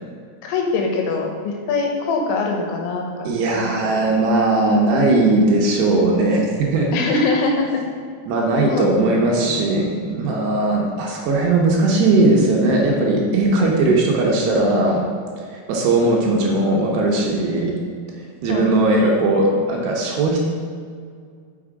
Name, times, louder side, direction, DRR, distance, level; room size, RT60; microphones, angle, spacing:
voice 1, 0.4-3.0 3.5-3.9 6.9-7.8 8.7-9.6 18.5-18.7 19.0-19.3, left 3 dB, 80° left, 1 dB, 3.2 m, -23 dB
voice 2, 3.2-6.9 8.3-15.0 15.5-17.7 18.4-20.4, right 2 dB, 75° right, -1 dB, 2.8 m, -18 dB
6.2 x 5.9 x 4.8 m, 2.1 s
omnidirectional pair, 5.3 m